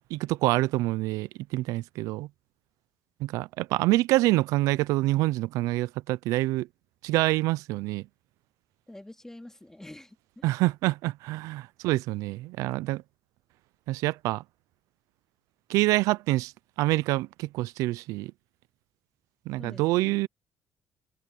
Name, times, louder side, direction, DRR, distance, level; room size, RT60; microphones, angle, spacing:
voice 1, 0.1-2.3 3.2-6.7 7.0-8.0 10.4-13.0 13.9-14.4 15.7-16.5 16.8-18.3 19.5-20.3, right 19 dB, 90° right, 0.4 m, -26 dB
voice 2, 8.9-10.5 19.6-20.2, left 1 dB, 10° left, 2.6 m, -46 dB
open air
cardioid pair, 85°, 6 cm